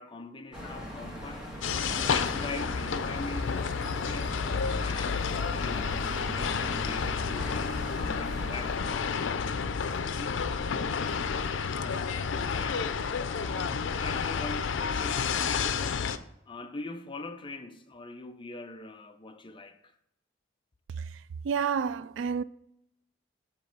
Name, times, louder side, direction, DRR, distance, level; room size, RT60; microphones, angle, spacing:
voice 1, 0.0-1.5 2.0-4.4 4.8-10.4 10.7-13.1 13.4-15.8 16.5-20.0, left 2 dB, 25° left, 0.6 m, -43 dB
sound 1, 0.5-8.7, equal, 5° right, 1.5 m, -40 dB
sound 2, 1.6-16.2, left 6 dB, 90° left, 0.5 m, -30 dB
voice 2, 20.9-22.4, right 6 dB, 75° right, 0.3 m, -30 dB
9.0 x 3.1 x 6.5 m
head